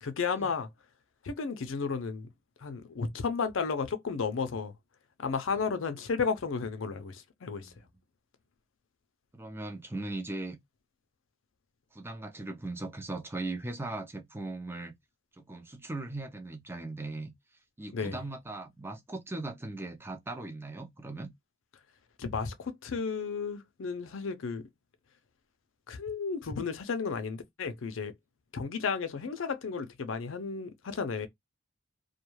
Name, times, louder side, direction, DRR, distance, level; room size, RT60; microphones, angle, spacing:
voice 1, 0.0-0.7 1.2-2.3 2.6-4.7 5.2-7.7 17.9-18.2 22.2-24.7 25.9-28.1 28.5-31.3, left 5 dB, 65° left, 0.5 m, -33 dB
voice 2, 9.3-10.6 11.9-14.9 15.4-17.3 17.8-21.3, right 2 dB, 10° right, 0.4 m, -39 dB
2.3 x 2.2 x 3.0 m
head